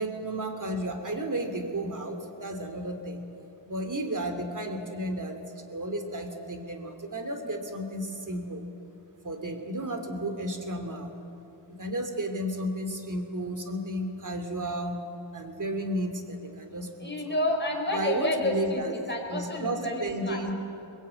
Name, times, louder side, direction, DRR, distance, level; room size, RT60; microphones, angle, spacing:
voice 1, 0.0-3.2 3.7-5.4 5.7-8.6 9.2-11.1 11.8-15.0 15.3-17.3 17.9-18.9 19.3-20.5, right 1 dB, 40° right, 6 dB, 2.8 m, -33 dB
voice 2, 17.0-20.5, left 1 dB, 20° left, 1 dB, 4.9 m, -30 dB
23.0 x 20.0 x 8.9 m, 2.9 s
wide cardioid pair, 80°, 48 cm